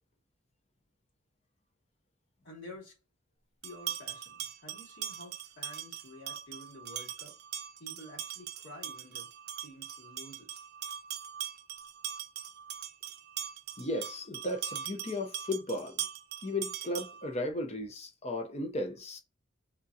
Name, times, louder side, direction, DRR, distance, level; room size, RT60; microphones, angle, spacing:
voice 1, 2.4-3.0 3.6-7.3 7.8-9.3 9.6-10.6, left 1 dB, 60° left, 2.4 m, -50 dB
sound 1, 3.6-17.3, right 10 dB, 50° right, 0.4 m, -41 dB
voice 2, 13.8-16.1 16.4-19.2, left 1 dB, 30° left, 0.7 m, -35 dB
3.6 x 3.6 x 2.7 m
head